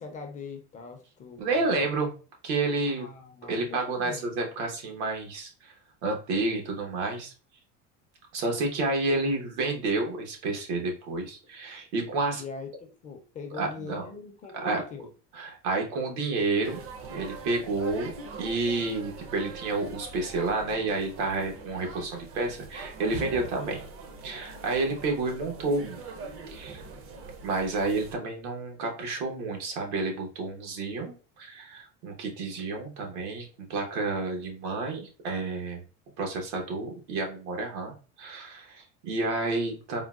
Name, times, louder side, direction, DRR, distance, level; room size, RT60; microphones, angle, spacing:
voice 1, 0.0-2.1 2.9-4.3 12.4-15.1, left 5 dB, 25° left, 4 dB, 0.4 m, -42 dB
voice 2, 1.4-2.1 2.4-3.1 3.5-5.7 6.0-7.3 8.3-12.4 13.5-14.0 14.6-14.8 15.3-16.8 17.1-18.1 18.4-23.8 24.2-26.0 26.5-26.8 27.4-35.8 36.2-40.0, right 3 dB, 85° right, 2 dB, 1.0 m, -30 dB
sound 1, 16.6-28.1, right 4 dB, 40° right, 0.6 m, -42 dB
3.8 x 2.1 x 2.3 m, 0.36 s
supercardioid pair, 140°, 33 cm